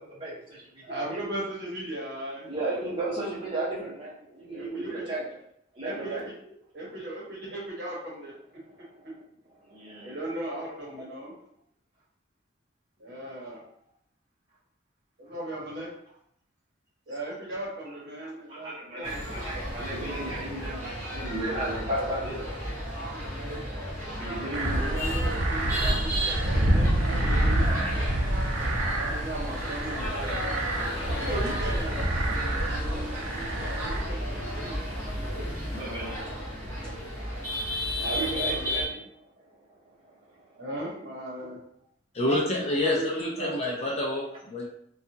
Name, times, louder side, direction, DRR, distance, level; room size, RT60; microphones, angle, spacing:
voice 1, 0.0-0.9 1.1-1.2 2.5-5.3 5.7-6.3 8.8-9.0 9.6-10.2 11.0-11.1 13.6-13.7 18.2-22.5 24.1-24.9 25.8-26.4 34.3-34.4 35.7-36.3 36.8-37.4 38.0-40.6 41.4-41.5, right 1 dB, 25° right, -7 dB, 0.9 m, -35 dB
voice 2, 0.8-2.5 4.5-5.0 5.8-6.2 6.7-9.1 10.0-11.3 13.0-13.6 15.2-15.9 17.1-19.2 23.1-23.6 24.4-28.0 28.9-30.3 31.1-32.0 33.7-34.8 35.2-36.3 38.0-38.3 40.6-41.6 42.2-43.6, right 1 dB, 55° right, -4 dB, 1.0 m, -37 dB
sound 1, 19.0-38.8, equal, 15° left, 1.0 m, -34 dB
sound 2, 24.5-34.0, right 1 dB, 75° right, 0.6 m, -27 dB
voice 3, 42.1-44.7, left 1 dB, 30° left, -3 dB, 0.5 m, -28 dB
2.7 x 2.3 x 2.7 m, 0.69 s
head